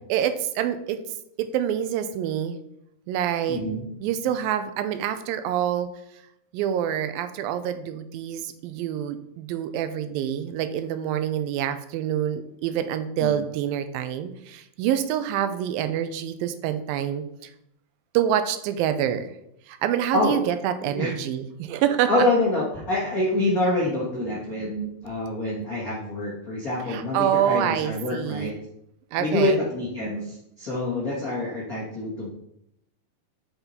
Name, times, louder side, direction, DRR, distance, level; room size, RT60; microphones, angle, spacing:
voice 1, 0.1-1.0 1.4-2.6 3.1-3.6 4.0-5.9 6.5-17.2 18.1-19.3 19.7-22.1 26.9-28.5 29.1-29.6, right 10 dB, 85° right, 10 dB, 2.3 m, -26 dB
voice 2, 3.5-3.8 13.2-13.4 20.1-20.3 20.8-21.1 22.1-28.5 29.2-32.3, left 2 dB, 65° left, -5 dB, 0.8 m, -26 dB
8.0 x 5.4 x 4.2 m, 0.78 s
omnidirectional pair, 4.2 m